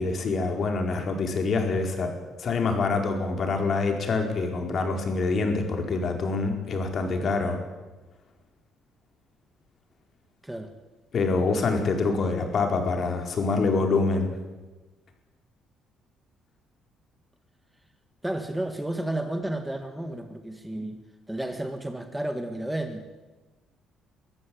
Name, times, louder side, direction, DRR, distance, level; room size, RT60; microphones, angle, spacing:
voice 1, 0.0-2.1 2.4-7.6 11.1-14.3, left 3 dB, 45° left, 4 dB, 4.5 m, -25 dB
voice 2, 18.2-21.0 21.3-23.0, right 1 dB, 5° right, 6 dB, 1.9 m, -32 dB
24.0 x 14.5 x 8.7 m, 1.2 s
cardioid pair, 115°, 0 cm